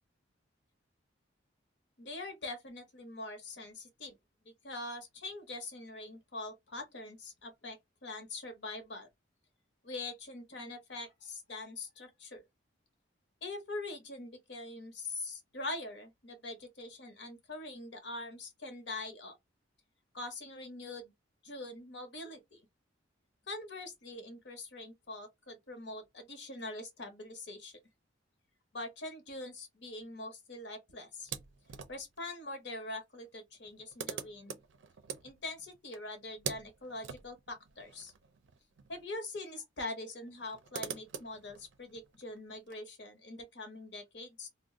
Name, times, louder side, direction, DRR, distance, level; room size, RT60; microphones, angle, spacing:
voice 1, 2.0-4.1 4.4-9.1 9.8-12.4 13.4-19.3 20.1-21.1 21.4-22.7 23.5-27.8 28.7-31.3 31.9-34.6 35.2-38.1 38.9-44.5, left 2 dB, 60° left, 0.9 m, -43 dB
sound 1, 31.2-32.2 33.2-33.3 33.5-39.1 39.3-39.4 40.3-42.7, right 7 dB, 75° right, 0.5 m, -45 dB
2.4 x 2.1 x 3.6 m
head